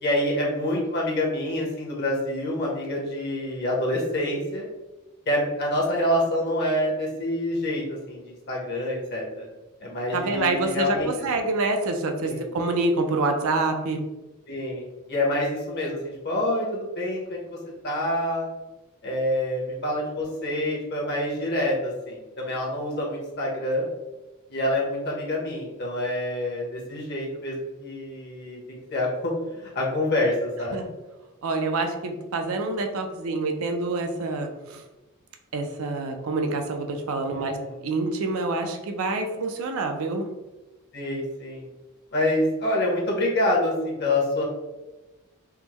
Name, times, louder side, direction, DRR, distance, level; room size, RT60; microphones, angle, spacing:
voice 1, 0.0-4.7 5.3-9.4 9.8-11.1 12.2-12.5 14.5-17.6 17.8-18.5 19.0-23.9 24.5-28.6 28.9-30.8 37.3-37.8 40.9-41.7 42.1-44.4, left 1 dB, 50° left, -3 dB, 0.9 m, -27 dB
voice 2, 10.1-14.0 30.7-30.9 31.4-34.8 35.5-40.3, right 3 dB, 70° right, 5 dB, 0.4 m, -27 dB
3.5 x 2.1 x 2.9 m, 1.1 s
head